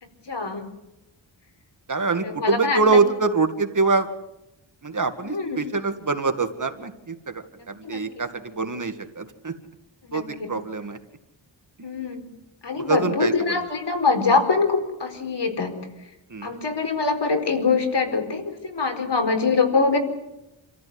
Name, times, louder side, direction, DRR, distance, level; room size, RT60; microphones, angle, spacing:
voice 1, 0.3-0.7 2.2-2.8 5.3-5.6 7.8-8.0 10.0-10.5 11.8-12.3 12.6-15.7 16.4-20.0, left 4 dB, 60° left, 6 dB, 4.6 m, -23 dB
voice 2, 1.9-4.1 4.8-9.5 10.1-11.0 11.8-12.2 12.8-13.7 16.3-16.5, right 4 dB, 40° right, 7 dB, 2.1 m, -25 dB
27.5 x 14.5 x 9.7 m, 0.92 s
wide cardioid pair, 95°, 46 cm